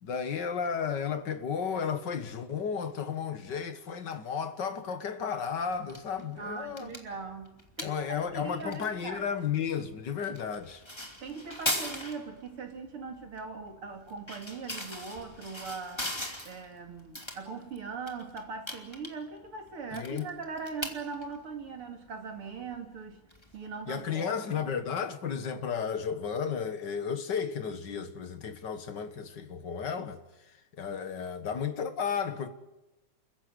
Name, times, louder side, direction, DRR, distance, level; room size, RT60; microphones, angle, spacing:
voice 1, 0.0-6.9 7.8-10.8 19.9-20.3 23.9-30.2 30.8-32.5, left 7 dB, 45° left, 1.7 m, -33 dB
sound 1, 5.7-24.1, left 1 dB, 10° left, 2.4 m, -41 dB
voice 2, 6.4-9.3 11.2-23.2 23.5-24.6, right 4 dB, 45° right, 3.4 m, -40 dB
28.5 x 16.0 x 10.0 m
omnidirectional pair, 3.5 m